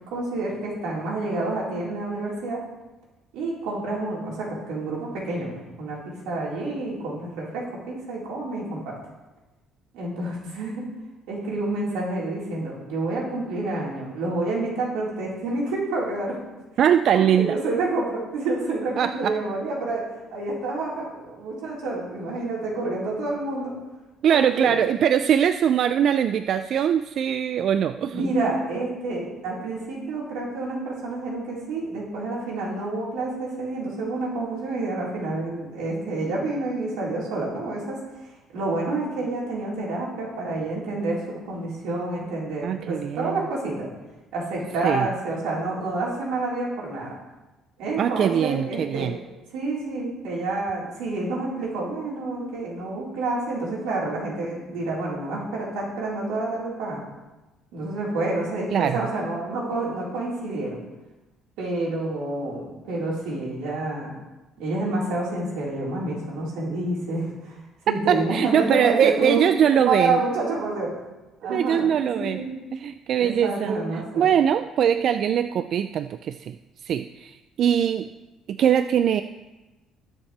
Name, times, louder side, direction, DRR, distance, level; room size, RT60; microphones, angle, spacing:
voice 1, 0.1-2.6 3.3-6.0 6.2-9.0 9.9-10.9 11.3-16.4 17.1-20.1 20.3-23.7 24.3-24.8 28.1-43.9 44.3-47.1 47.8-49.1 49.5-57.0 57.7-60.8 61.6-64.1 64.6-67.6 67.9-71.0 71.4-72.5 73.2-74.3, right 2 dB, 90° right, -5 dB, 4.3 m, -28 dB
voice 2, 16.8-17.5 19.0-19.3 24.2-28.2 42.6-43.4 44.8-45.1 48.0-49.1 58.7-59.0 68.3-70.2 71.5-72.4 72.7-73.8 74.2-76.6 76.8-78.1 78.5-79.2, right 9 dB, 55° right, 10 dB, 0.4 m, -22 dB
20.0 x 7.2 x 3.4 m, 1.1 s
cardioid pair, 130°, 0 cm